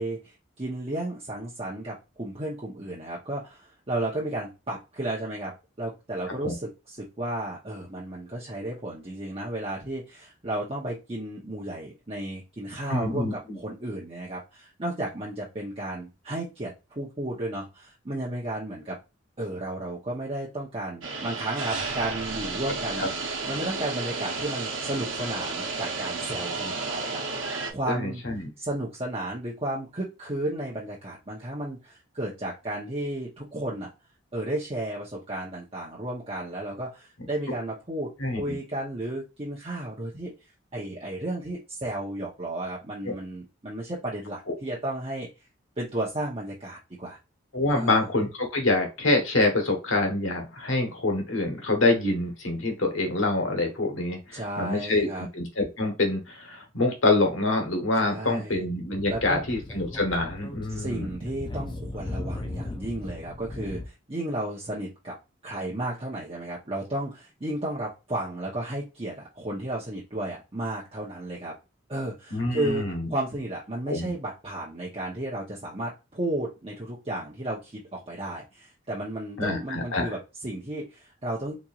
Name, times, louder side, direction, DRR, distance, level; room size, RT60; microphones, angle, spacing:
voice 1, 0.0-19.0 19.4-23.0 23.5-28.2 28.6-33.9 34.3-40.3 40.7-45.3 45.8-47.2 47.7-48.1 54.3-55.3 58.0-58.6 59.1-59.4 60.7-65.1 65.4-71.5 71.9-72.8 73.1-81.6, right 1 dB, 30° right, -5 dB, 0.9 m, -33 dB
voice 2, 12.9-13.6 23.0-23.1 27.9-28.5 38.2-38.5 47.5-61.1 72.3-73.1 73.9-74.1 79.4-80.1, left 2 dB, 90° left, 3 dB, 1.3 m, -26 dB
sound 1, 21.0-27.7, right 4 dB, 75° right, 0.9 m, -32 dB
Speech / Wind, 59.0-63.9, left 2 dB, 25° left, 0.5 m, -37 dB
4.3 x 3.0 x 2.5 m, 0.27 s
head